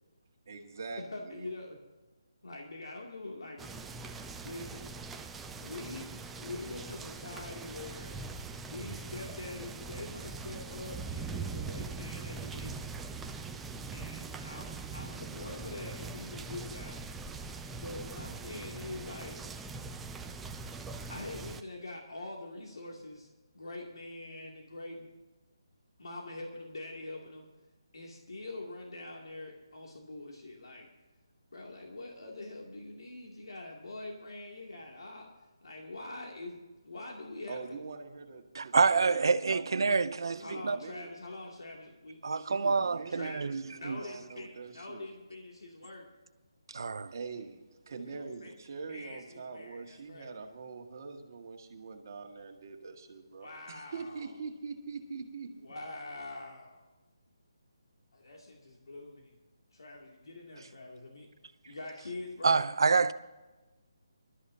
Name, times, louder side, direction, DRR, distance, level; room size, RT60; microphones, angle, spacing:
voice 1, 0.5-1.5 37.5-41.1 42.4-45.1 47.1-47.6 47.9-55.5, right 4 dB, 40° right, 1.9 m, -44 dB
voice 2, 1.1-1.8 2.4-3.7 4.4-4.9 5.6-6.0 6.4-8.2 8.6-12.8 13.9-17.0 17.8-19.4 21.1-23.3 23.5-25.1 26.0-27.5 27.9-30.9 31.5-35.3 35.6-37.8 40.4-42.5 43.1-46.1 48.1-48.5 48.9-50.3 53.4-54.3 55.6-56.9 58.1-59.3 59.7-61.3 61.6-62.6, left 2 dB, 80° left, 2.7 m, -44 dB
sound 1, 3.6-21.6, right 4 dB, 5° right, 0.4 m, -42 dB
voice 3, 38.5-40.8 42.2-44.0 46.7-47.1 62.4-63.1, right 4 dB, 65° right, 0.7 m, -27 dB
23.5 x 13.0 x 2.8 m
hypercardioid pair, 170°, 3 cm